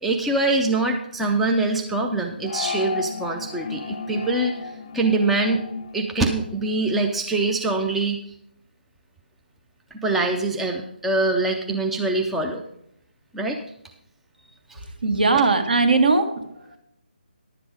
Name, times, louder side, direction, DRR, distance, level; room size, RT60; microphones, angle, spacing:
voice 1, 0.0-5.6 5.9-8.2 9.9-12.6 13.3-13.6 14.7-14.8, right 2 dB, 5° right, 2 dB, 0.5 m, -24 dB
sound 1, 2.4-7.1, left 5 dB, 35° left, 0.7 m, -34 dB
voice 2, 15.0-16.8, right 3 dB, 60° right, 6 dB, 1.8 m, -20 dB
11.0 x 7.7 x 5.0 m, 0.76 s
figure-of-eight pair, 150°, 6 cm